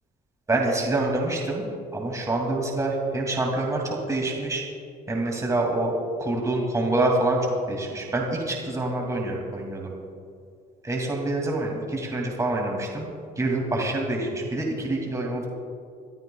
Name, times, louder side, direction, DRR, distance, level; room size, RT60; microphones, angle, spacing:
voice 1, 0.5-1.6 1.9-4.6 5.1-5.9 6.2-7.4 7.7-9.9 10.8-13.1 13.4-15.5, right 2 dB, 20° right, -1 dB, 2.6 m, -26 dB
27.5 x 13.5 x 2.4 m, 2.3 s
cardioid pair, 110°, 17 cm